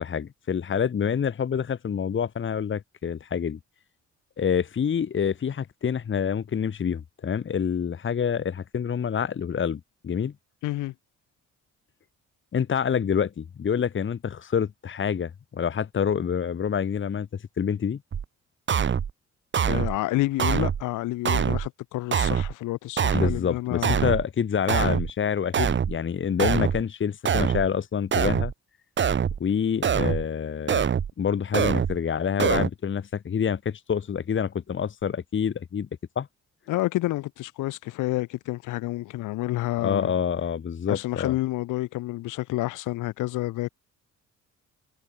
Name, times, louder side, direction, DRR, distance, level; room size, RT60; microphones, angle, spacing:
voice 1, 0.0-3.6 4.4-10.3 12.5-17.3 17.6-18.0 23.1-28.5 29.4-30.9 31.2-35.9 36.1-36.3 39.8-41.3, left 7 dB, 40° left, 1.5 m, -27 dB
voice 2, 10.6-10.9 19.6-24.0 36.7-40.1 40.9-43.7, left 17 dB, 90° left, 1.3 m, -29 dB
sound 1, 18.1-18.2 18.7-19.1 19.5-20.0 20.4-20.8 21.3-21.7 22.1-22.5 23.0-23.4 23.8-24.2 24.7-25.1 25.5-26.0 26.4-26.8 27.3-27.7 28.1-28.5 29.0-29.4 29.8-30.2 30.7-31.1 31.5-32.0 32.4-32.7, right 7 dB, 40° right, 1.0 m, -24 dB
cardioid pair, 90°, 30 cm